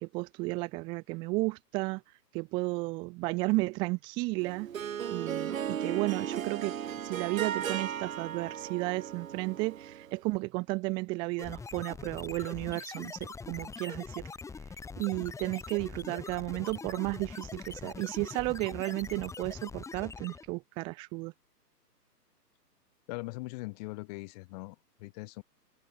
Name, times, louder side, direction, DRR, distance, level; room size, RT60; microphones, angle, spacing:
voice 1, 0.0-2.0 2.3-4.7 5.1-14.3 15.0-21.3, right 25 dB, 10° right, 0.8 m, -33 dB
Harp, 4.4-10.2, right 9 dB, 55° right, 0.9 m, -36 dB
sound 1, 11.4-20.6, left 4 dB, 5° left, 3.9 m, -43 dB
voice 2, 23.1-25.4, left 26 dB, 25° left, 2.2 m, -41 dB
open air
figure-of-eight pair, 135°, 49 cm